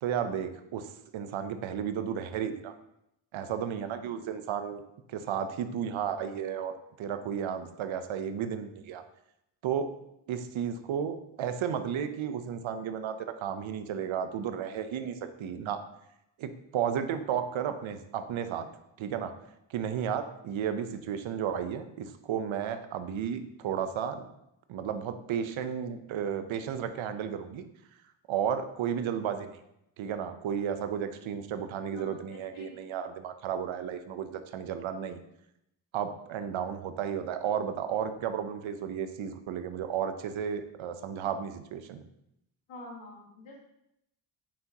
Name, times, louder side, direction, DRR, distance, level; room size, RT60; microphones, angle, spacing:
voice 1, 0.0-2.7 3.3-4.8 5.1-6.7 7.0-9.0 9.6-9.9 10.3-15.9 16.4-18.7 19.0-19.3 19.7-24.2 24.7-27.6 28.3-29.6 30.0-35.2 35.9-42.0, right 8 dB, 70° right, 9 dB, 0.8 m, -33 dB
voice 2, 31.9-32.8 42.7-43.6, left 1 dB, 70° left, -1 dB, 1.8 m, -47 dB
8.5 x 5.7 x 2.9 m, 0.81 s
supercardioid pair, 65°, 49 cm